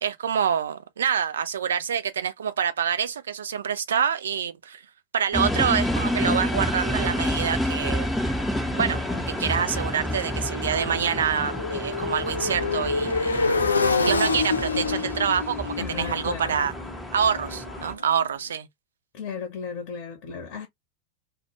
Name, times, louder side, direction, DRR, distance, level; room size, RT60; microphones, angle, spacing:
voice 1, 0.0-4.8 5.1-8.2 8.8-9.0 9.3-13.4 14.0-16.7 17.1-18.7, right 8 dB, 65° right, 0.3 m, -26 dB
sound 1, 5.3-17.9, left 1 dB, 5° left, 0.6 m, -29 dB
Motorcycle, 8.4-18.2, left 4 dB, 80° left, 0.4 m, -28 dB
voice 2, 15.8-16.6 19.1-20.7, left 6 dB, 45° left, 0.7 m, -35 dB
2.2 x 2.0 x 2.8 m
figure-of-eight pair, 90°, 0 cm